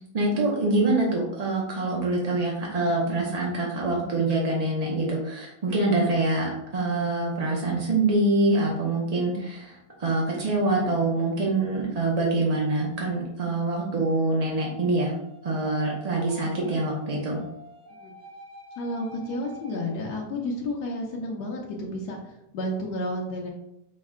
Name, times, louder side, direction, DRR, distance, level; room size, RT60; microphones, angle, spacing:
voice 1, 0.0-15.1 15.4-17.4, right 2 dB, 55° right, -2 dB, 0.4 m, -25 dB
sound 1, 14.6-20.5, equal, 80° right, 1.8 m, -47 dB
voice 2, 18.8-23.5, left 1 dB, 80° left, -1 dB, 1.2 m, -31 dB
5.3 x 2.1 x 3.5 m, 0.86 s
omnidirectional pair, 1.7 m